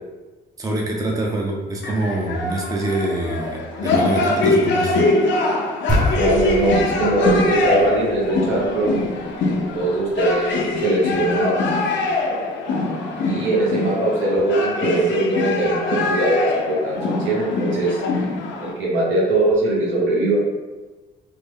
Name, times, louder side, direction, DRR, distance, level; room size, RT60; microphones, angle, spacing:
voice 1, 0.6-5.0, right 1 dB, 15° right, -1 dB, 0.5 m, -25 dB
sound 1, 1.8-18.7, left 2 dB, 70° left, 0.5 m, -23 dB
sound 2, 5.9-10.4, equal, 40° right, 0.9 m, -28 dB
voice 2, 6.1-9.0 9.7-11.7 13.2-18.0 18.6-20.4, right 2 dB, 75° right, -5 dB, 1.1 m, -21 dB
3.2 x 2.1 x 3.5 m, 1.2 s
cardioid pair, 90°, 20 cm